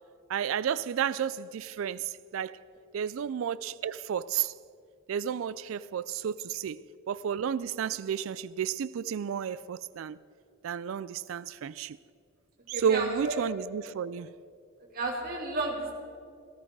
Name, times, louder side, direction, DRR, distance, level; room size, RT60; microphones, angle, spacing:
voice 1, 0.3-2.6 2.9-4.5 5.1-10.2 10.6-12.0 12.7-14.3, right 8 dB, 85° right, 0.4 m, -32 dB
voice 2, 12.7-13.4 14.9-15.9, right 2 dB, 50° right, 2.8 m, -32 dB
17.5 x 13.5 x 4.7 m
head